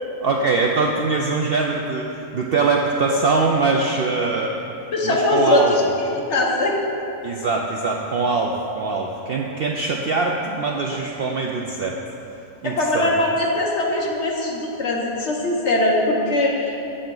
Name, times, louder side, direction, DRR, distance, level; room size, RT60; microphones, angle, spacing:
voice 1, 0.2-4.6 5.0-5.9 7.2-12.0 12.6-13.1, right 3 dB, 65° right, 0 dB, 0.6 m, -22 dB
voice 2, 4.9-5.8 6.1-6.8 12.6-16.8, left 2 dB, 55° left, -1 dB, 1.3 m, -21 dB
8.6 x 7.5 x 3.8 m, 2.9 s
omnidirectional pair, 1.5 m